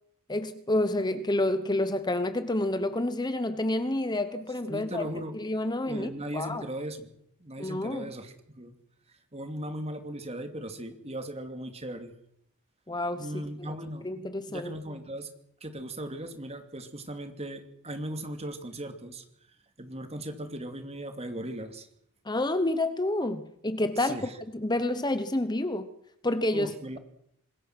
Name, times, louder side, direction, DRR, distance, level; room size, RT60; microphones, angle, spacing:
voice 1, 0.3-5.1 5.3-6.7 7.6-8.1 12.9-13.3 14.0-14.7 22.2-24.2 24.5-25.8 26.2-26.7, left 1 dB, 20° left, 11 dB, 1.0 m, -29 dB
voice 2, 4.7-5.3 5.9-7.1 7.4-8.7 9.3-12.1 13.2-14.1 14.5-15.3 15.6-19.2 19.8-21.9 24.0-24.3 26.5-27.0, right 1 dB, 30° right, 7 dB, 2.6 m, -38 dB
26.0 x 21.0 x 6.1 m, 0.73 s
head